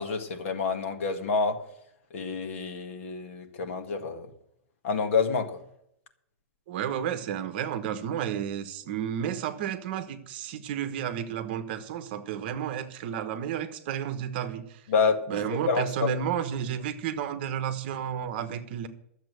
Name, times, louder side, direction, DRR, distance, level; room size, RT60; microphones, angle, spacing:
voice 1, 0.0-1.6 2.1-4.3 4.8-5.6 14.9-15.2 15.7-16.1, left 5 dB, 55° left, 5 dB, 1.8 m, -28 dB
voice 2, 6.7-14.8 15.3-18.9, right 9 dB, 40° right, 10 dB, 1.1 m, -32 dB
13.0 x 7.4 x 7.8 m, 0.76 s
supercardioid pair, 180°, 8 cm